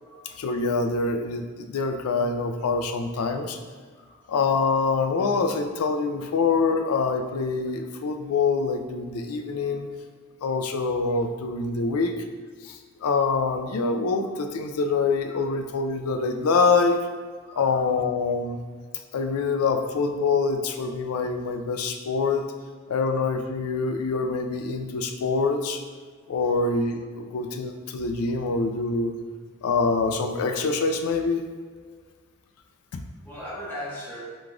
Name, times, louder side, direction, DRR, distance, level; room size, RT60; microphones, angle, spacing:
voice 1, 0.4-3.6 4.3-9.9 10.4-12.1 12.6-17.0 17.6-18.6 19.1-22.5 22.9-25.8 26.3-29.1 29.6-31.4 32.9-33.0, left 4 dB, 90° left, 5 dB, 0.4 m, -25 dB
voice 2, 17.5-18.0 26.2-26.3 33.2-34.2, left 1 dB, 10° left, -9 dB, 1.3 m, -39 dB
5.0 x 3.6 x 2.4 m, 1.5 s
head